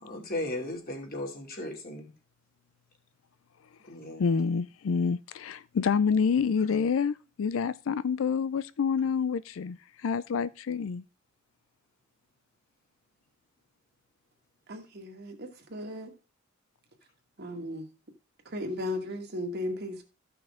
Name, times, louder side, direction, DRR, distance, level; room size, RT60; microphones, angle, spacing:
voice 1, 0.0-2.1 3.9-4.2, left 1 dB, 50° left, 2.7 m, -36 dB
voice 2, 4.2-11.0, left 6 dB, 80° left, 0.4 m, -28 dB
voice 3, 14.7-16.1 17.4-17.9 18.4-20.0, left 1 dB, 55° right, 1.8 m, -36 dB
13.5 x 6.0 x 3.6 m
head